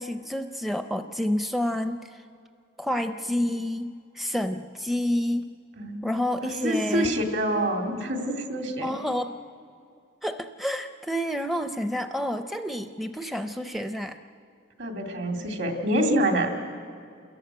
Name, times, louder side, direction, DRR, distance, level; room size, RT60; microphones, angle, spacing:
voice 1, 0.0-2.2 2.8-5.5 6.0-7.2 8.8-9.4 10.2-14.2, left 1 dB, ahead, 8 dB, 0.5 m, -29 dB
voice 2, 5.8-6.1 6.4-8.9 14.8-16.5, right 1 dB, 65° right, 4 dB, 2.7 m, -26 dB
29.0 x 14.0 x 9.0 m, 2.4 s
head